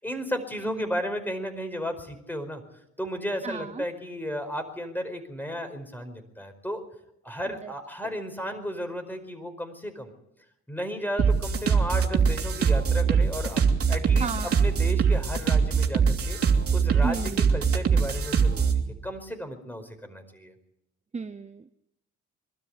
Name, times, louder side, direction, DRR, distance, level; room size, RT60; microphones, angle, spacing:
voice 1, 0.0-2.6 3.0-6.8 7.2-10.1 10.7-16.4 16.7-18.7 19.0-20.5, equal, 5° left, 7 dB, 4.9 m, -34 dB
voice 2, 0.7-1.0 3.4-3.8 7.6-7.7 14.2-14.6 17.0-17.6 21.1-21.7, right 5 dB, 20° right, 10 dB, 0.8 m, -34 dB
sound 1, 11.2-18.8, right 6 dB, 50° right, 3.0 m, -23 dB
23.5 x 12.5 x 9.6 m, 0.82 s
cardioid pair, 90°, 30 cm